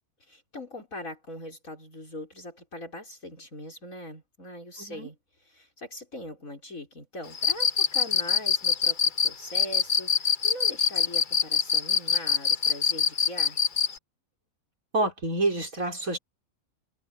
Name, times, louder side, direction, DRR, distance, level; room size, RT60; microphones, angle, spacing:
voice 1, 0.2-13.6, left 1 dB, 65° left, 6.3 m, -41 dB
Cricket, 7.3-13.9, left 6 dB, 40° left, 1.0 m, -23 dB
voice 2, 14.9-16.2, right 2 dB, 70° right, 5.1 m, -27 dB
omnidirectional pair, 1.5 m